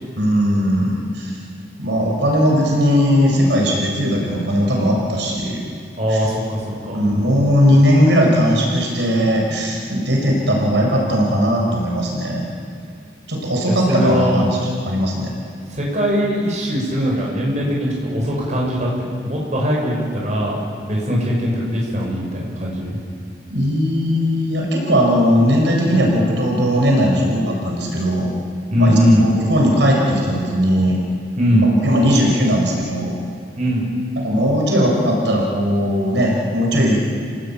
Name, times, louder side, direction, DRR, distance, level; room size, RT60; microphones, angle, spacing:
voice 1, 0.2-1.3 1.8-5.6 6.1-6.2 6.9-12.5 13.3-14.6 14.9-15.3 23.5-28.3 28.8-31.0 31.8-33.2 34.2-37.0, equal, 85° right, -1 dB, 5.4 m, -18 dB
voice 2, 6.0-7.0 13.9-14.4 15.7-23.0 28.7-29.3 31.4-31.7 33.6-33.9, equal, 40° right, -2 dB, 6.1 m, -20 dB
29.0 x 18.5 x 8.9 m, 2.2 s
head